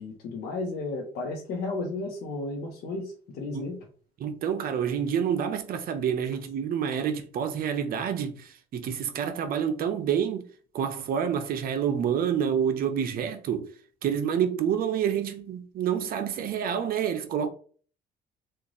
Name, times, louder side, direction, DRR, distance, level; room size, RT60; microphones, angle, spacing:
voice 1, 0.0-3.8, left 3 dB, 75° left, 1.0 m, -33 dB
voice 2, 4.2-10.5 10.7-13.7 14.0-17.5, right 8 dB, 60° right, 0.8 m, -28 dB
3.2 x 2.5 x 3.9 m
cardioid pair, 110°, 17 cm